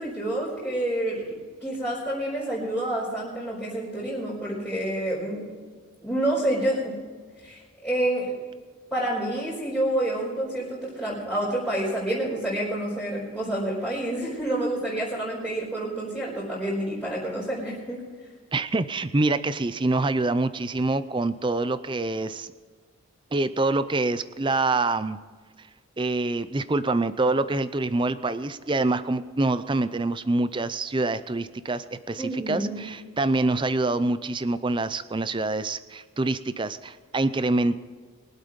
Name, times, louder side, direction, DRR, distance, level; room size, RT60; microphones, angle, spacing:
voice 1, 0.0-1.3 1.6-5.4 6.0-7.0 7.4-8.4 8.9-18.0 32.2-32.8, right 1 dB, 5° left, -10 dB, 4.7 m, -28 dB
voice 2, 18.5-22.5 23.3-25.2 26.0-37.8, right 2 dB, 20° right, 14 dB, 0.5 m, -26 dB
23.0 x 8.3 x 5.2 m, 1.5 s
head